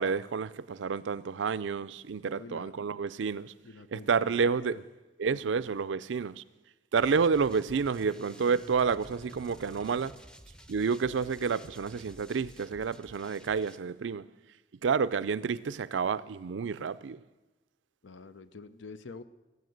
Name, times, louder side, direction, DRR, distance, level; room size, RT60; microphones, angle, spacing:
voice 1, 0.0-3.5 3.9-4.8 5.2-6.4 6.9-10.2 10.7-14.3 14.8-17.2, right 5 dB, 80° right, 0.4 m, -29 dB
voice 2, 2.2-2.7 3.6-4.8 5.3-5.7 18.0-19.2, left 3 dB, 85° left, 0.7 m, -47 dB
sound 1, 7.0-13.8, equal, 5° left, 0.6 m, -51 dB
17.5 x 8.1 x 7.8 m
head